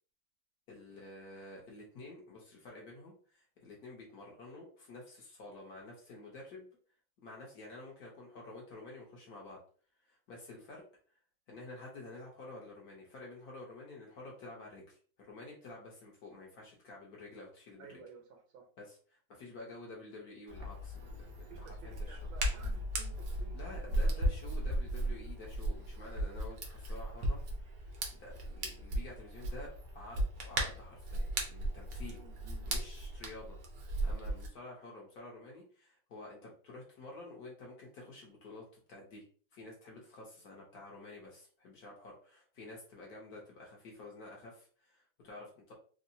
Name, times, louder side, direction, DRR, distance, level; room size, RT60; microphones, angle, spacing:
voice 1, 0.7-6.7 7.2-9.6 10.0-10.8 11.5-18.0 18.8-22.2 23.5-32.2 32.7-33.6 34.0-39.3 39.5-45.7, left 2 dB, 60° left, -3 dB, 1.1 m, -50 dB
voice 2, 17.8-18.7 21.5-24.1 24.4-24.8 28.4-28.6 32.1-32.6, right 5 dB, 85° right, 3 dB, 1.6 m, -55 dB
Hands, 20.5-34.5, right 1 dB, 65° right, 0.9 m, -36 dB
3.6 x 2.0 x 2.6 m, 0.43 s
omnidirectional pair, 2.2 m